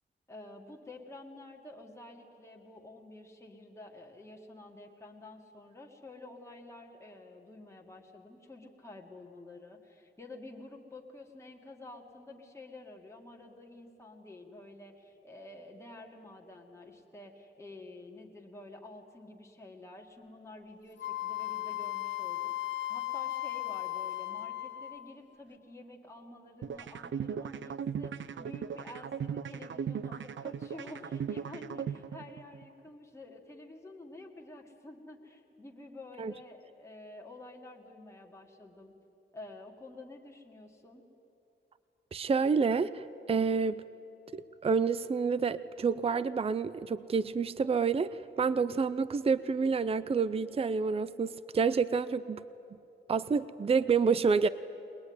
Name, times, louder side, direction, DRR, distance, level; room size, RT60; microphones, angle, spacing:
voice 1, 0.3-38.9 39.3-41.0, left 2 dB, 15° left, 0 dB, 1.9 m, -50 dB
Wind instrument woodwind instrument, 21.0-25.1, left 16 dB, 65° left, 0.7 m, -36 dB
sound 1, 26.6-32.6, right 7 dB, 75° right, 0.7 m, -37 dB
voice 2, 42.1-43.8 44.3-52.4 53.1-54.5, right 5 dB, 30° right, 15 dB, 0.5 m, -28 dB
22.0 x 21.0 x 9.6 m, 2.7 s
wide cardioid pair, 165°, 20 cm